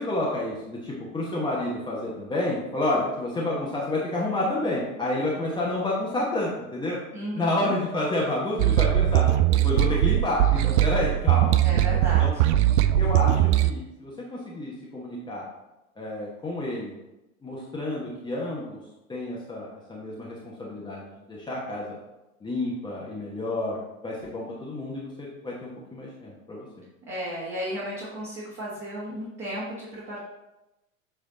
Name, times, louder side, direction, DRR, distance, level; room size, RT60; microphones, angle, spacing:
voice 1, 0.0-7.0 7.3-9.2 9.6-11.6 12.2-12.3 12.9-15.4 16.0-16.9 17.4-18.8 19.1-22.0 22.4-26.7, left 1 dB, 10° left, -5 dB, 1.0 m, -29 dB
voice 2, 7.1-7.7 11.6-12.4 27.1-30.2, equal, 25° right, -6 dB, 1.7 m, -34 dB
sound 1, 8.6-13.7, right 13 dB, 55° right, 0.5 m, -20 dB
7.8 x 3.3 x 4.0 m, 0.96 s
figure-of-eight pair, 100°, 43 cm